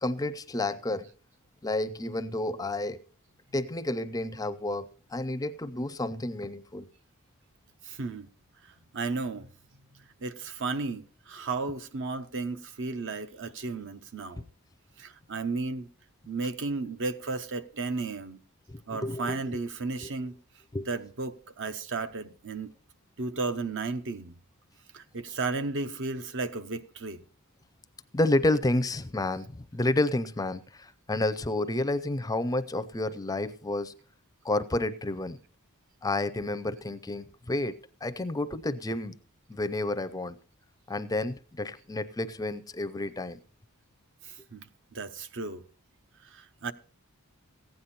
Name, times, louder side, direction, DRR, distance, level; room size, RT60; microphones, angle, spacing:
voice 1, 0.0-1.1 1.6-3.0 3.5-6.9 18.7-19.6 20.0-20.1 20.7-20.9 28.1-33.9 34.4-35.4 36.0-37.8 38.0-39.2 39.5-40.4 40.9-43.4, left 2 dB, 15° left, 0.5 m, -30 dB
voice 2, 7.8-8.3 8.9-9.5 10.2-14.4 15.0-15.9 16.3-18.4 18.9-20.4 20.9-22.7 23.2-24.3 24.9-27.2 44.2-44.7 44.9-45.6 46.3-46.7, right 3 dB, 55° right, 0.8 m, -34 dB
15.5 x 9.3 x 4.3 m
head